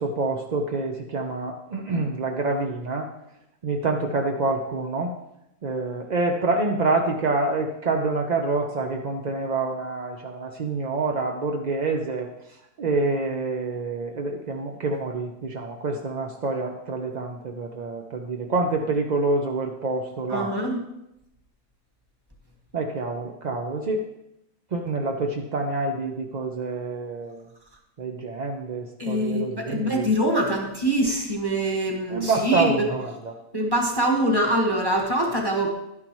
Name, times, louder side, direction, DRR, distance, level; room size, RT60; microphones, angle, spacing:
voice 1, 0.0-3.1 3.6-5.1 5.6-12.3 12.8-20.5 22.7-24.0 24.7-27.4 28.0-30.1 32.1-33.3, right 3 dB, 50° right, 2 dB, 0.5 m, -27 dB
voice 2, 20.3-20.8 29.0-32.7 33.5-35.7, right 1 dB, 15° right, 0 dB, 1.4 m, -24 dB
11.5 x 9.5 x 3.1 m, 0.85 s
omnidirectional pair, 1.6 m